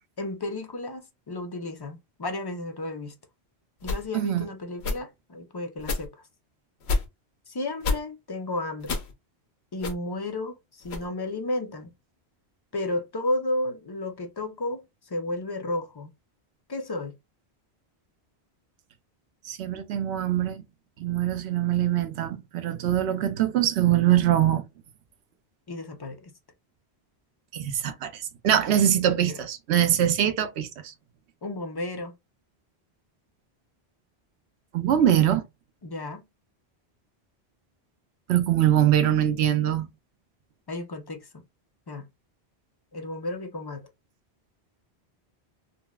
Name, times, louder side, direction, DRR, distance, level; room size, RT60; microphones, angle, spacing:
voice 1, 0.2-3.1 3.8-6.1 7.5-9.0 9.7-11.9 12.7-16.1 16.7-17.1 25.7-26.3 29.3-29.4 31.4-32.1 35.8-36.2 40.7-41.4 41.9-42.1 42.9-43.8, left 2 dB, 35° left, 0.4 m, -33 dB
sound 1, 3.8-4.1 4.8-5.0 5.8-6.1 6.8-7.1 7.8-8.0 8.8-9.1 9.8-9.9 10.8-11.1, left 3 dB, 75° left, 1.0 m, -28 dB
voice 2, 4.1-4.5 19.5-20.6 21.0-24.6 27.5-30.9 34.7-35.4 38.3-39.9, right 11 dB, 85° right, 0.9 m, -23 dB
3.9 x 2.1 x 2.2 m
omnidirectional pair, 1.1 m